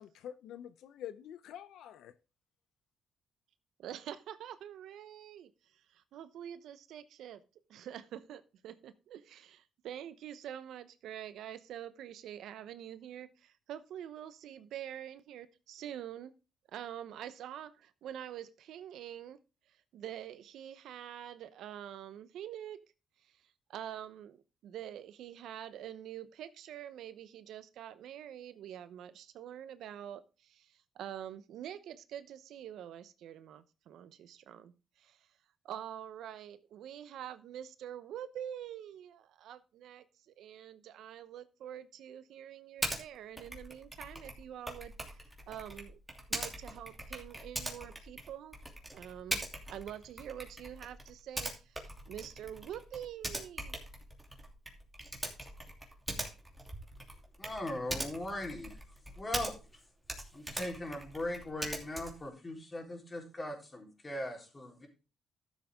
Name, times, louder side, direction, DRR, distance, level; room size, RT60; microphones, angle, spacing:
voice 1, 0.0-2.1, left 10 dB, 80° left, 0.6 m, -47 dB
voice 2, 3.8-5.5 5.9-7.4 7.7-16.3 16.7-19.4 19.9-22.8 23.7-34.7 35.0-35.2 35.6-46.0 46.3-48.6 48.9-53.8, right 10 dB, 80° right, 0.9 m, -46 dB
Typing, 42.8-43.0 43.4-59.8 60.0-62.3, right 1 dB, 10° right, 2.8 m, -42 dB
voice 3, 57.4-58.8 59.2-59.5 60.3-64.9, left 1 dB, 25° left, 4.0 m, -39 dB
13.0 x 7.3 x 3.6 m
cardioid pair, 90°, 0 cm